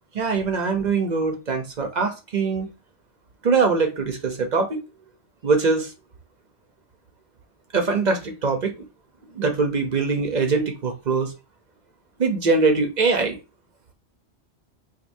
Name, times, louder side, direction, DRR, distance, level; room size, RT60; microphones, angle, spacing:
voice 1, 0.1-2.7 3.4-4.8 5.4-5.9 7.7-8.7 9.4-11.3 12.2-13.4, right 4 dB, 45° right, 0.7 m, -22 dB
4.4 x 2.6 x 2.6 m
omnidirectional pair, 1.2 m